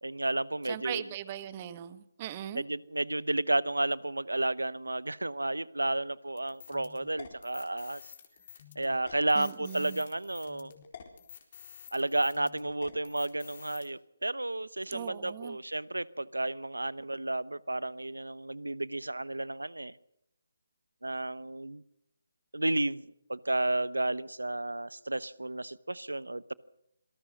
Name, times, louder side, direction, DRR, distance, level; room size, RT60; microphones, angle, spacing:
voice 1, 0.0-1.0 2.5-8.0 8.8-10.7 11.9-19.9 21.0-21.8 22.5-26.5, right 2 dB, 90° right, 20 dB, 0.9 m, -32 dB
voice 2, 0.6-2.6 9.3-10.1 14.9-15.6, right 11 dB, 30° right, 14 dB, 1.3 m, -39 dB
sound 1, 6.4-13.9, left 8 dB, 45° left, 4.1 m, -50 dB
26.5 x 18.5 x 6.5 m, 0.79 s
figure-of-eight pair, 150°, 0 cm